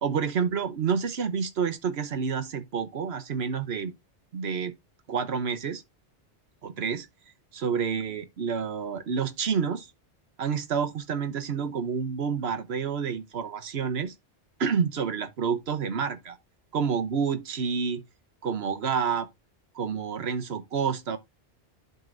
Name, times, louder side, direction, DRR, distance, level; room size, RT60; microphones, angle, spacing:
voice 1, 0.0-3.9 4.3-4.7 5.1-5.8 6.6-7.1 7.5-9.9 10.4-14.1 14.6-16.4 16.7-18.0 18.4-19.3 19.7-21.2, right 6 dB, 65° right, 1.2 m, -29 dB
10.5 x 5.4 x 2.5 m
omnidirectional pair, 1.2 m